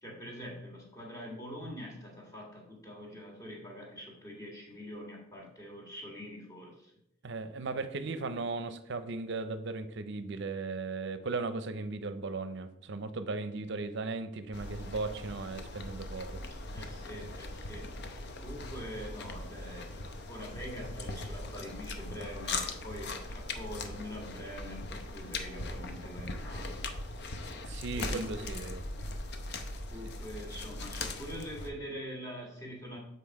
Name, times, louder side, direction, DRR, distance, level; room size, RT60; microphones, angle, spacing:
voice 1, 0.0-6.9 8.0-8.4 16.7-26.9 28.0-28.8 29.9-33.0, equal, 15° left, -2 dB, 1.8 m, -44 dB
voice 2, 7.2-16.4 27.7-28.9, right 3 dB, 60° right, 11 dB, 0.6 m, -37 dB
sound 1, 14.5-31.7, left 2 dB, 55° left, 0.7 m, -40 dB
7.5 x 4.1 x 4.7 m, 0.75 s
head